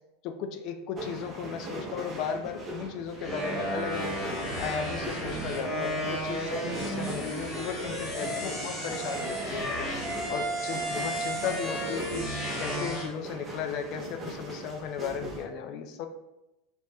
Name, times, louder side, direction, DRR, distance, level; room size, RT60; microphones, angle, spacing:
voice 1, 0.2-6.5 6.8-12.3 12.6-16.1, left 7 dB, 55° left, 6 dB, 0.3 m, -36 dB
sound 1, 1.0-15.4, right 1 dB, 25° right, 0.7 m, -41 dB
sound 2, 3.2-13.1, equal, 15° left, 1.1 m, -33 dB
2.7 x 2.1 x 3.3 m, 0.94 s
hypercardioid pair, 100°, 0 cm